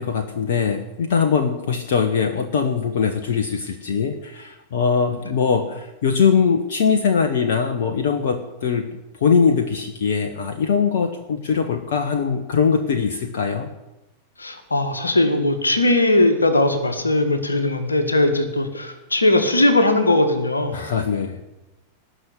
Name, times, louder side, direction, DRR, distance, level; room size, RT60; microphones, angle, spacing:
voice 1, 0.0-8.9 9.2-13.7 20.7-21.4, left 6 dB, 55° left, 6 dB, 1.2 m, -21 dB
voice 2, 14.4-20.8, left 2 dB, 80° left, 8 dB, 1.8 m, -19 dB
19.0 x 6.4 x 9.8 m, 0.97 s
figure-of-eight pair, 90°, 0 cm